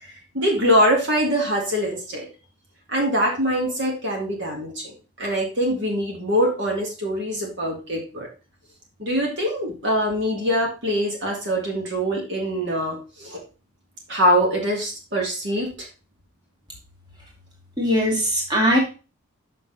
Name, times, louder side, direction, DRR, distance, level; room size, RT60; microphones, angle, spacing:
voice 1, 0.0-2.3 2.9-8.3 9.0-13.4 14.1-15.9, equal, 55° right, 0 dB, 1.9 m, -23 dB
voice 2, 17.8-18.8, equal, 20° right, -2 dB, 2.2 m, -20 dB
6.6 x 5.9 x 3.9 m, 0.32 s
head